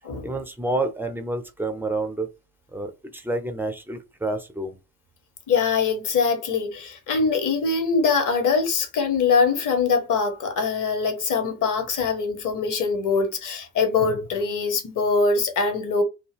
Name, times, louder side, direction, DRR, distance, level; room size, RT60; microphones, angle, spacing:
voice 1, 0.2-2.3 2.7-4.8, right 2 dB, 5° right, 0.5 m, -29 dB
voice 2, 5.5-16.0, left 4 dB, 40° left, 1.0 m, -23 dB
2.7 x 2.2 x 3.3 m
figure-of-eight pair, 50°, 47 cm